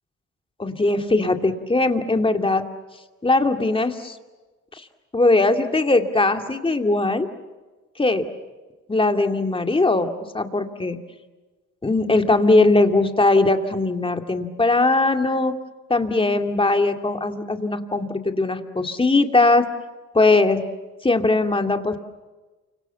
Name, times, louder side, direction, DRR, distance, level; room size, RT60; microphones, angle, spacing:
voice 1, 0.6-2.6 3.2-4.2 4.7-4.8 5.1-7.3 8.0-8.2 8.9-11.0 11.8-15.5 15.9-19.6 20.1-20.6 21.0-22.0, left 2 dB, 15° left, 5 dB, 2.4 m, -20 dB
29.5 x 26.0 x 7.1 m, 1.2 s
cardioid pair, 90°, 30 cm